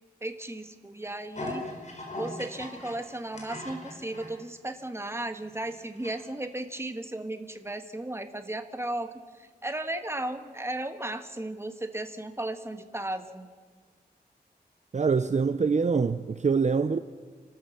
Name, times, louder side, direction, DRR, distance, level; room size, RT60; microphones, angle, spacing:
voice 1, 0.2-1.6 2.2-13.5, right 1 dB, 15° right, 1.4 m, -35 dB
sound 1, 1.4-4.3 4.8-4.9 5.5-6.1 6.4-6.5, left 1 dB, 45° left, 4.7 m, -39 dB
voice 2, 14.9-17.0, right 5 dB, 45° right, 0.6 m, -24 dB
29.0 x 13.0 x 7.2 m
wide cardioid pair, 100°, 16 cm